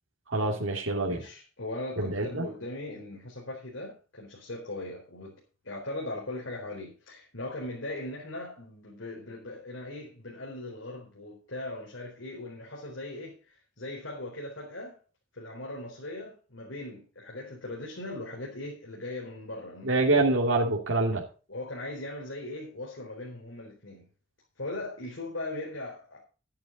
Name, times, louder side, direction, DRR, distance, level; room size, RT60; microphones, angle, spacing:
voice 1, 0.3-1.2 2.0-2.4 19.8-21.2, right 2 dB, 80° right, 2.6 m, -25 dB
voice 2, 1.1-5.4 5.6-15.0 15.3-20.1 21.5-24.1 24.6-26.3, left 2 dB, 80° left, 4.2 m, -39 dB
12.5 x 10.5 x 3.9 m
head